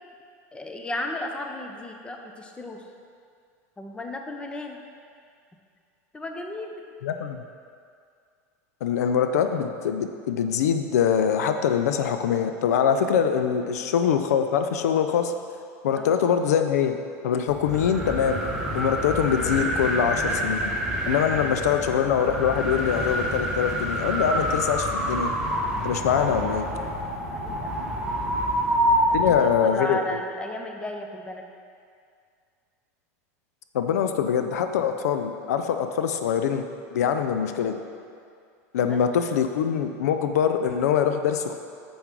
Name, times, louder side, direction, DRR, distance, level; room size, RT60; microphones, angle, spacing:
voice 1, 0.5-2.8 3.8-4.8 6.1-6.8 13.6-13.9 15.9-16.2 27.3-27.8 28.1-28.4 29.1-31.4 38.7-39.0, left 1 dB, 10° left, 3 dB, 0.7 m, -35 dB
voice 2, 7.0-7.4 8.8-15.3 15.8-17.0 17.2-18.4 18.7-20.7 21.1-25.3 25.8-26.7 29.1-30.2 33.7-36.6 36.9-37.8 38.7-41.6, left 8 dB, 85° left, 7 dB, 0.4 m, -23 dB
sound 1, 17.5-29.6, equal, 10° right, 1.4 m, -27 dB
7.0 x 5.9 x 3.7 m, 2.3 s
supercardioid pair, 110°, 8 cm